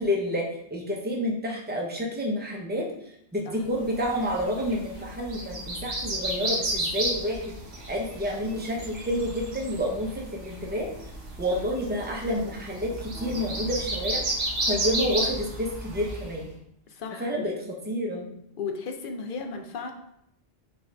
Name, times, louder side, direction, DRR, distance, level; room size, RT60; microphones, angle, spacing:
voice 1, 0.0-2.9 3.3-7.5 7.9-10.9 11.4-14.2 14.7-16.5 17.2-17.5 17.9-18.3, equal, 10° right, -1 dB, 0.6 m, -29 dB
sound 1, 3.9-16.4, right 1 dB, 85° right, 1.4 m, -33 dB
voice 2, 16.9-17.6 18.6-19.9, left 5 dB, 60° left, 5 dB, 0.6 m, -35 dB
6.1 x 2.5 x 3.2 m, 0.75 s
omnidirectional pair, 1.2 m